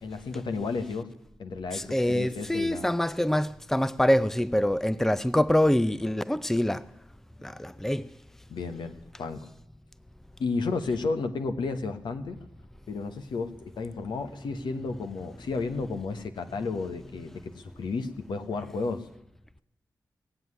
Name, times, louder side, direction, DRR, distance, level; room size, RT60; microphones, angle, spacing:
voice 1, 0.0-1.1 1.4-2.9 8.5-9.5 10.4-12.4 12.9-19.1, left 4 dB, 80° left, 1.2 m, -32 dB
voice 2, 1.7-6.8 7.4-8.1, left 1 dB, 5° left, 0.5 m, -25 dB
18.5 x 7.8 x 9.7 m
cardioid pair, 45°, 8 cm